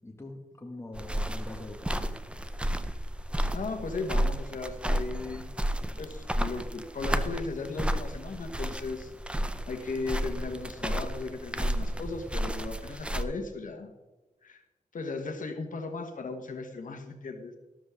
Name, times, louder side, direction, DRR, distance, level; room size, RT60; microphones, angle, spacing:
voice 1, 0.0-2.1, left 2 dB, 20° left, 1 dB, 2.0 m, -43 dB
sound 1, 0.9-13.2, equal, 10° right, 0.6 m, -32 dB
voice 2, 3.5-9.4 9.7-13.9 14.4-14.6 14.9-17.6, left 3 dB, 75° left, 5 dB, 1.3 m, -37 dB
12.5 x 12.5 x 3.7 m, 1.1 s
wide cardioid pair, 150°, 14 cm